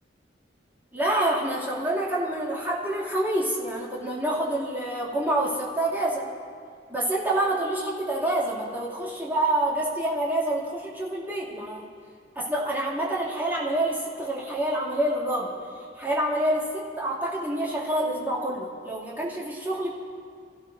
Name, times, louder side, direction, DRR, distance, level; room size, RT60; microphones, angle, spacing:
voice 1, 0.9-6.3 6.9-11.9 12.3-15.5 15.9-19.9, right 1 dB, 10° right, -6 dB, 2.7 m, -27 dB
27.0 x 15.5 x 2.7 m, 2.3 s
head